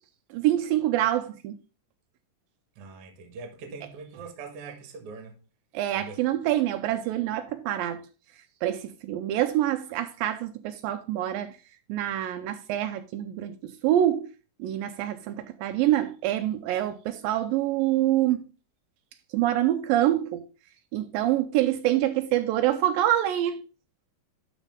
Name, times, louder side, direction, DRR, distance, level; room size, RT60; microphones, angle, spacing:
voice 1, 0.3-1.6 5.7-8.1 8.6-11.6 11.9-14.3 14.6-18.4 19.3-20.5 20.9-23.6, right 13 dB, 85° right, 2.3 m, -26 dB
voice 2, 2.8-5.4 5.9-6.3, right 4 dB, 55° right, 1.8 m, -42 dB
11.5 x 4.2 x 3.6 m
omnidirectional pair, 4.1 m